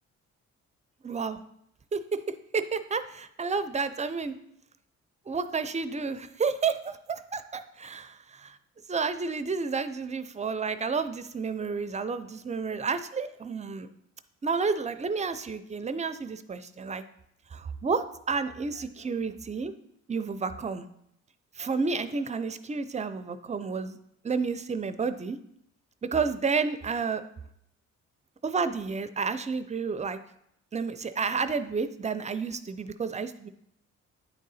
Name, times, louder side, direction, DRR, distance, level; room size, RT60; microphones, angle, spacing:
voice 1, 1.0-1.4 1.9-2.2 2.5-4.3 5.3-8.6 8.9-13.9 14.4-17.0 17.5-19.7 20.1-20.8 21.6-24.0 24.2-25.4 26.1-27.2 28.4-30.2 30.7-33.5, right 5 dB, 25° right, 11 dB, 0.4 m, -30 dB
9.3 x 3.7 x 4.1 m, 0.75 s
cardioid pair, 90°, 30 cm